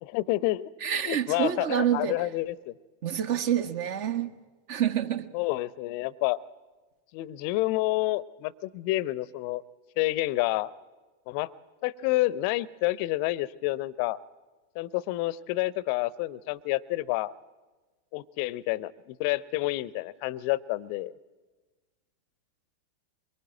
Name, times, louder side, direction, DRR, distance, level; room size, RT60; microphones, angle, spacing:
voice 1, 0.0-0.7 1.0-2.7 5.3-6.4 7.1-9.6 10.0-10.7 11.3-11.5 11.8-14.2 14.7-17.3 18.1-21.1, left 18 dB, 45° left, 0.7 m, -29 dB
voice 2, 0.8-2.1 3.0-4.3 4.7-5.2, right 10 dB, 45° right, 1.4 m, -27 dB
23.0 x 22.0 x 8.9 m
figure-of-eight pair, 90°, 0 cm